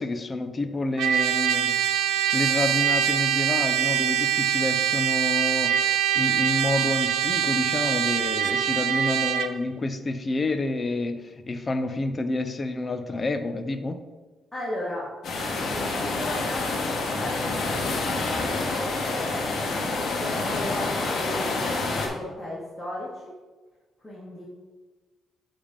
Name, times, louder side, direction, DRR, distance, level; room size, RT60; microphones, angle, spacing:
voice 1, 0.0-1.7 2.3-14.0, left 2 dB, 35° left, 8 dB, 0.6 m, -29 dB
Trumpet, 1.0-9.5, right 10 dB, 85° right, 0.4 m, -24 dB
voice 2, 14.5-15.1 15.4-23.3 24.0-24.5, left 1 dB, 10° left, -7 dB, 1.9 m, -36 dB
sound 1, 15.2-22.1, left 3 dB, 60° left, 1.5 m, -28 dB
7.1 x 3.5 x 5.2 m, 1.3 s
cardioid pair, 90°, 0 cm